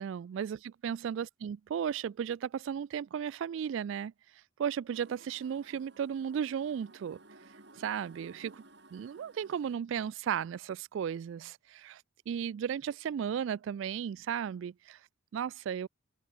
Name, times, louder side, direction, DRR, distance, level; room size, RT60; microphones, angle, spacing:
voice 1, 0.0-7.2 7.8-8.6 8.9-15.0 15.3-15.9, right 8 dB, 75° right, 0.3 m, -35 dB
sound 1, 4.9-9.8, right 2 dB, 60° right, 3.9 m, -57 dB
head